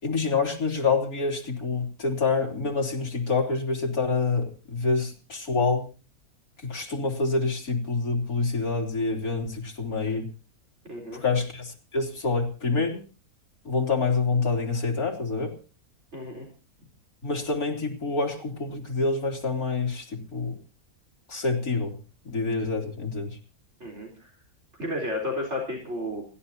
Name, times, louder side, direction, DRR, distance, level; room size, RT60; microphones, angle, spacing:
voice 1, 0.0-5.9 6.6-10.3 11.1-13.0 13.6-15.5 17.2-20.6 21.3-22.0 22.2-23.4, left 4 dB, 70° left, 0 dB, 4.0 m, -27 dB
voice 2, 10.8-11.2 16.1-16.5 23.8-24.3 24.8-26.3, left 1 dB, 45° right, 0 dB, 4.7 m, -32 dB
28.5 x 13.0 x 2.9 m, 0.35 s
omnidirectional pair, 1.6 m